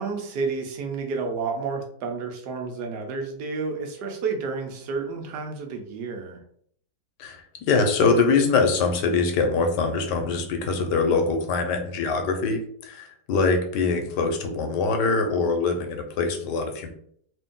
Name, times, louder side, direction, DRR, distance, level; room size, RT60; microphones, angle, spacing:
voice 1, 0.0-6.4, right 4 dB, 80° right, 3 dB, 1.4 m, -30 dB
voice 2, 7.2-16.9, left 4 dB, 90° left, 5 dB, 1.3 m, -23 dB
3.3 x 2.6 x 3.6 m, 0.64 s
omnidirectional pair, 1.8 m